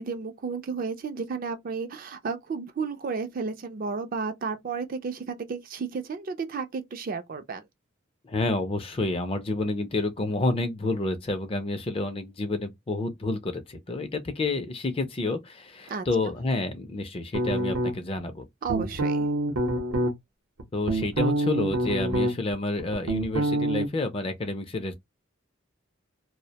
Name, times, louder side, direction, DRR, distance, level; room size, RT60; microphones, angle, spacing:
voice 1, 0.0-7.6 15.9-16.3 18.6-19.3, right 5 dB, 45° right, 0.3 m, -33 dB
voice 2, 8.3-18.5 20.7-24.9, left 2 dB, 25° left, 0.4 m, -29 dB
sound 1, 17.3-18.2 18.7-20.1 20.6-22.5 22.8-23.9, right 1 dB, 90° right, 0.7 m, -26 dB
2.4 x 2.0 x 2.7 m
head